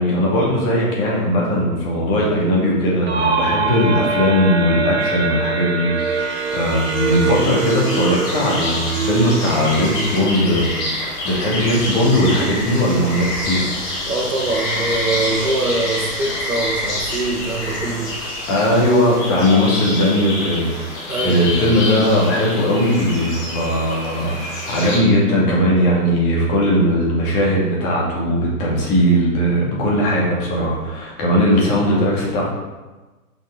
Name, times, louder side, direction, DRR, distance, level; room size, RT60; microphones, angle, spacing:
voice 1, 0.0-10.7 11.0-13.7 18.5-32.4, equal, 25° left, -4 dB, 2.1 m, -18 dB
sound 1, 3.1-10.7, right 5 dB, 45° right, 0.7 m, -24 dB
sound 2, 5.5-25.0, left 1 dB, 10° left, 0.6 m, -27 dB
voice 2, 14.1-18.1 21.1-21.5, right 2 dB, 65° right, -1 dB, 1.3 m, -23 dB
7.2 x 5.8 x 3.8 m, 1.2 s
figure-of-eight pair, 120°, 45 cm